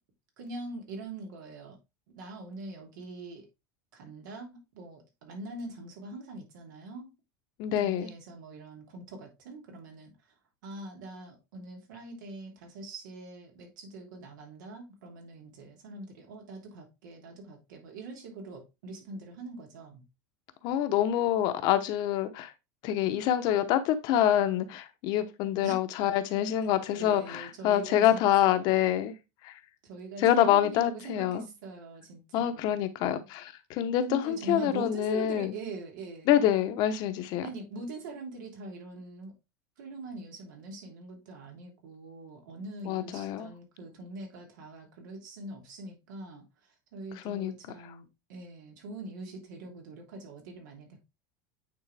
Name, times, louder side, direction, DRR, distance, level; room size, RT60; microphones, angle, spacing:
voice 1, 0.4-1.8 2.1-3.5 3.9-7.1 7.8-10.1 10.6-20.0 25.6-25.7 27.0-28.6 29.8-32.8 34.0-36.3 37.4-39.3 39.8-51.0, right 2 dB, 85° right, 3.2 m, -43 dB
voice 2, 7.6-8.1 20.6-22.5 22.8-29.1 29.4-29.6 30.2-31.5 32.3-35.5 36.3-37.5 42.8-43.5 47.2-47.5, left 11 dB, 45° left, 0.9 m, -26 dB
9.1 x 3.9 x 3.4 m
supercardioid pair, 160°, 10 cm